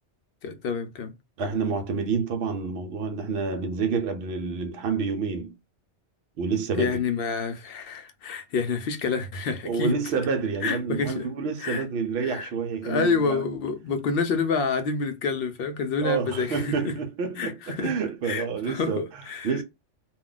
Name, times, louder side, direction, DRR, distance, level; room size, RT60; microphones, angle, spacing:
voice 1, 0.4-1.1 6.7-10.0 10.6-11.3 11.6-11.8 12.2-12.5 12.8-16.9 17.4-17.9 18.2-19.6, left 5 dB, 65° left, 0.7 m, -28 dB
voice 2, 1.4-5.5 6.4-7.0 9.6-13.4 16.0-19.6, right 5 dB, 65° right, 0.8 m, -28 dB
2.4 x 2.2 x 3.7 m
omnidirectional pair, 1.2 m